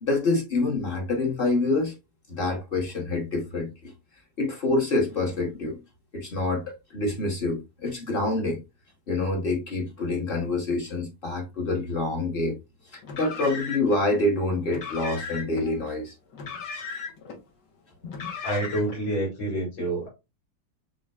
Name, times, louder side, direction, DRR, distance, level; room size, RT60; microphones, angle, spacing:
voice 1, 0.0-1.9 2.3-3.9 4.4-5.8 6.1-8.6 9.1-12.6 12.9-16.1 18.0-18.3, left 2 dB, 40° left, 0.9 m, -27 dB
Car, 13.0-14.0 14.7-15.6 16.3-17.4 18.1-19.0, left 5 dB, 65° left, 1.7 m, -36 dB
voice 2, 18.4-20.1, right 1 dB, 85° left, 3.1 m, -28 dB
6.3 x 2.9 x 2.3 m
omnidirectional pair, 2.0 m